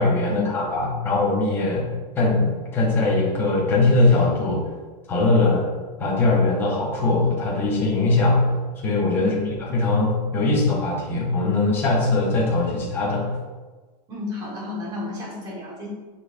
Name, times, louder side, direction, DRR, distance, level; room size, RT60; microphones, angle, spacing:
voice 1, 0.0-1.9 2.2-4.6 5.1-5.7 6.0-8.4 8.8-9.3 9.7-13.3, left 2 dB, 10° left, -5 dB, 0.9 m, -21 dB
voice 2, 9.2-9.5 14.1-15.9, left 3 dB, 20° right, -4 dB, 1.5 m, -31 dB
9.8 x 4.2 x 2.6 m, 1.3 s
supercardioid pair, 180°, 21 cm